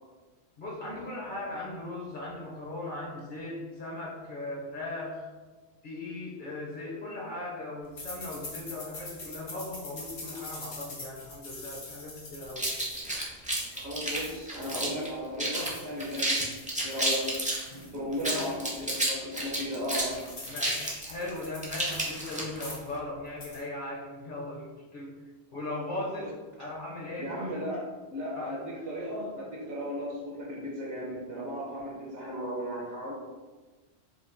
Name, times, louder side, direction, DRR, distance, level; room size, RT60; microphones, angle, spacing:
voice 1, 0.6-5.3 5.8-12.7 18.1-18.5 20.5-25.2 25.5-26.3 26.6-27.3 28.3-28.6, left 2 dB, 55° left, -4 dB, 0.8 m, -38 dB
sound 1, 8.0-15.1 15.4-19.1 19.5-19.6 19.8-22.3 22.5-23.0 23.3-23.6, left 2 dB, 80° left, 1.2 m, -44 dB
sound 2, 12.6-15.1 15.4-15.7 16.0-17.6 18.1-22.7, right 1 dB, 10° right, 0.5 m, -30 dB
voice 2, 13.7-16.6 16.8-17.4 17.9-20.2 27.2-33.1, equal, 75° right, -4 dB, 1.1 m, -35 dB
4.7 x 2.2 x 2.5 m, 1.3 s
omnidirectional pair, 1.1 m